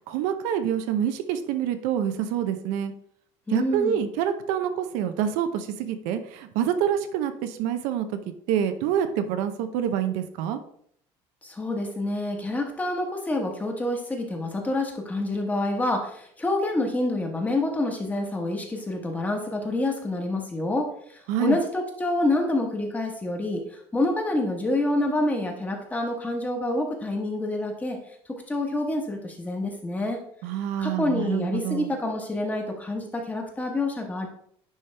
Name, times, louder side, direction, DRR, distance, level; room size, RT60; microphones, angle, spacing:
voice 1, 0.1-2.9 3.5-10.6 21.3-21.6 30.4-31.9, right 9 dB, 80° right, 9 dB, 0.7 m, -27 dB
voice 2, 3.5-4.0 11.4-28.0 28.3-30.2 30.8-34.3, left 2 dB, 10° left, 2 dB, 1.2 m, -27 dB
9.9 x 3.4 x 3.3 m, 0.65 s
cardioid pair, 135°, 13 cm